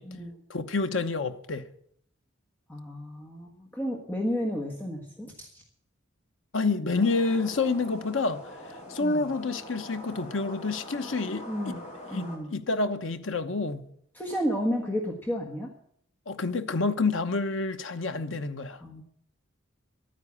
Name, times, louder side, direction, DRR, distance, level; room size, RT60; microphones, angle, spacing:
voice 1, 0.5-1.7 6.5-11.5 12.1-13.9 16.3-18.8, left 3 dB, 70° left, 1.0 m, -28 dB
voice 2, 2.7-5.6 9.0-9.3 11.5-11.8 12.1-12.5 14.1-15.7 18.8-19.0, equal, 10° left, 1.4 m, -32 dB
sound 1, 6.9-12.4, left 1 dB, 35° left, 4.2 m, -43 dB
12.0 x 9.6 x 8.5 m
head